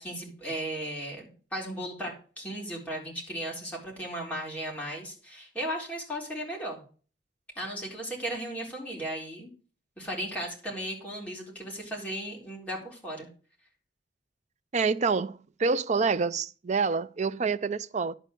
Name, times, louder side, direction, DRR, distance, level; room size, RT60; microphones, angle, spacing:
voice 1, 0.0-6.8 7.6-9.5 10.0-13.3, right 1 dB, 10° left, 3.9 m, -36 dB
voice 2, 14.7-18.1, right 4 dB, 40° right, 0.5 m, -27 dB
11.5 x 4.5 x 7.7 m
head